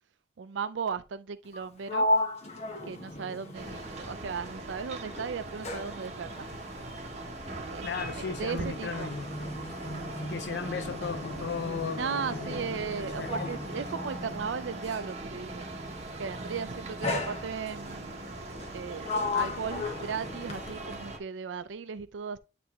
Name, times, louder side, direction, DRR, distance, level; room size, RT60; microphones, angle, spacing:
voice 1, 0.4-2.1 2.9-6.5 7.7-7.9 8.2-9.1 11.9-15.7 16.2-18.3 18.7-19.1 19.3-22.4, right 6 dB, 80° right, 0.4 m, -36 dB
Sliding door, 1.4-4.7 5.0-15.2 16.1-16.4 17.0-17.9 18.5-21.1, left 2 dB, 35° left, 1.2 m, -36 dB
sound 1, 3.5-21.2, right 2 dB, 35° right, 1.1 m, -40 dB
voice 2, 7.8-9.3 10.3-12.7 13.0-13.5, left 6 dB, 60° left, 0.4 m, -36 dB
9.5 x 3.3 x 3.0 m
head